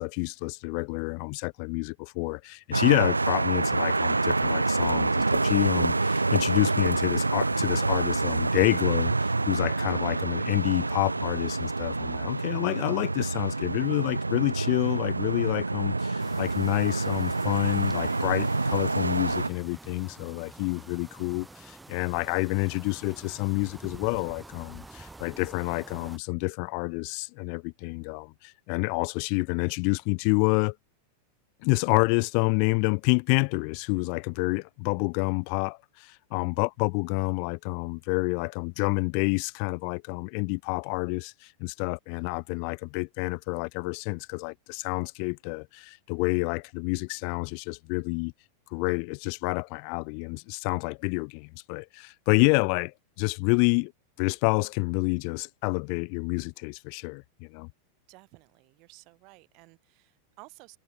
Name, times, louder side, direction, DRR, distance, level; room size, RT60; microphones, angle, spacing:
voice 1, 0.0-30.7 31.6-48.3 48.7-53.9 54.2-57.7, left 40 dB or more, 45° left, 0.7 m, -28 dB
sound 1, 2.7-19.5, right 3 dB, 80° right, 0.6 m, -27 dB
sound 2, 16.2-26.2, right 2 dB, 10° right, 2.8 m, -48 dB
voice 2, 58.1-60.8, right 27 dB, 40° right, 5.3 m, -54 dB
figure-of-eight pair, 90°, 0 cm